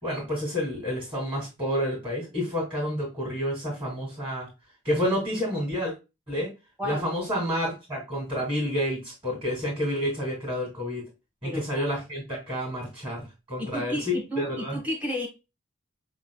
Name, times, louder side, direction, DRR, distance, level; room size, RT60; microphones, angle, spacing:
voice 1, 0.0-4.5 4.8-5.9 6.3-6.5 6.8-11.0 11.4-14.8, equal, 25° right, 2.4 m, -29 dB
voice 2, 11.4-11.9 13.6-15.3, equal, 5° right, 1.1 m, -32 dB
4.9 x 3.8 x 2.3 m
head